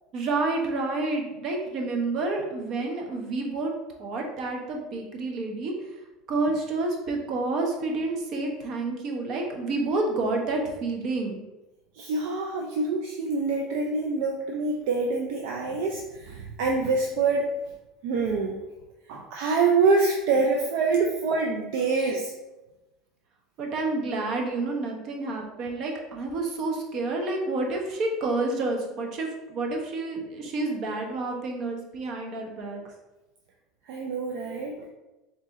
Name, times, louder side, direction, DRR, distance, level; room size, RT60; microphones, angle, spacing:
voice 1, 0.1-3.7 4.0-5.7 6.3-11.4 23.6-32.8, right 2 dB, 55° right, 1 dB, 0.9 m, -29 dB
voice 2, 12.0-17.5 18.0-18.6 19.1-22.3 33.9-34.9, right 4 dB, 70° right, 0 dB, 0.5 m, -25 dB
4.0 x 2.8 x 3.7 m, 1.0 s
supercardioid pair, 100°, 0 cm